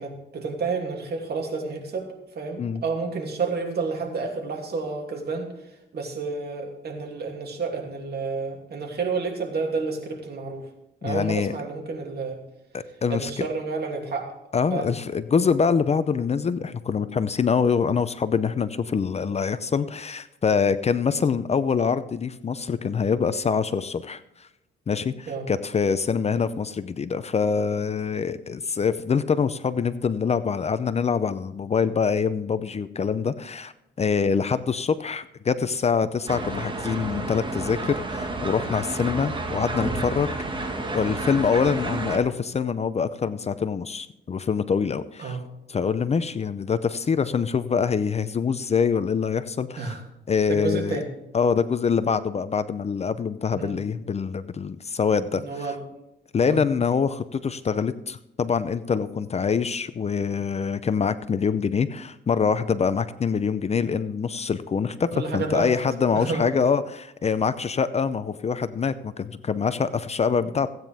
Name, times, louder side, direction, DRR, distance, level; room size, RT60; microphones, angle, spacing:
voice 1, 0.0-5.5 5.9-10.7 11.0-12.4 13.1-14.3 14.7-14.9 25.3-25.5 45.2-45.4 49.8-50.0 50.5-51.1 53.6-53.8 55.3-55.8 56.4-56.6 65.1-65.7 66.1-66.5, right 4 dB, 55° right, 2 dB, 2.7 m, -30 dB
voice 2, 11.0-11.5 12.7-13.5 14.5-24.5 24.9-33.7 34.0-40.6 40.9-45.4 45.7-49.9 50.3-51.0 51.3-55.8 56.3-70.7, left 6 dB, 35° left, 13 dB, 0.6 m, -25 dB
sound 1, 36.3-42.2, right 2 dB, 25° right, 1.6 m, -30 dB
16.0 x 9.2 x 3.5 m, 0.88 s
cardioid pair, 90°, 20 cm